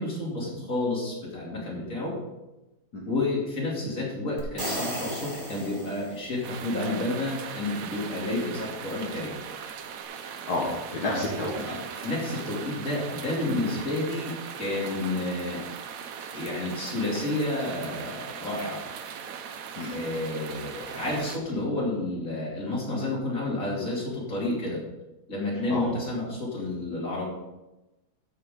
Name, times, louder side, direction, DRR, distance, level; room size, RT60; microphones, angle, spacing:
voice 1, 0.0-2.2 3.0-9.3 11.1-11.2 11.7-15.6 16.3-18.8 19.9-24.8 25.3-27.3, left 2 dB, 55° left, -4 dB, 3.4 m, -30 dB
sound 1, 4.4-6.5, right 1 dB, 30° right, 2.4 m, -35 dB
sound 2, 6.4-21.4, right 7 dB, 65° right, 1.1 m, -39 dB
voice 2, 10.5-11.7 13.4-13.6 14.9-15.0 19.8-20.0 25.5-25.9, left 2 dB, 75° left, -5 dB, 2.2 m, -31 dB
14.5 x 6.6 x 3.8 m, 1.0 s
omnidirectional pair, 1.7 m